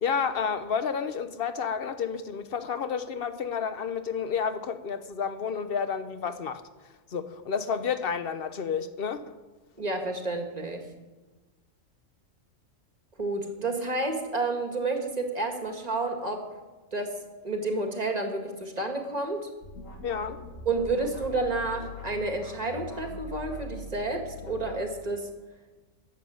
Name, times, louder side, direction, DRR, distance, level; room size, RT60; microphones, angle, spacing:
voice 1, 0.0-6.6 7.1-9.3 20.0-20.4, left 6 dB, 50° left, 1.0 m, -30 dB
voice 2, 9.8-10.8 13.2-16.4 16.9-17.2 17.4-19.5 20.7-25.3, right 2 dB, 30° right, 1.9 m, -30 dB
sound 1, 19.6-24.8, left 2 dB, 85° left, 2.4 m, -42 dB
13.5 x 7.6 x 9.5 m
omnidirectional pair, 1.3 m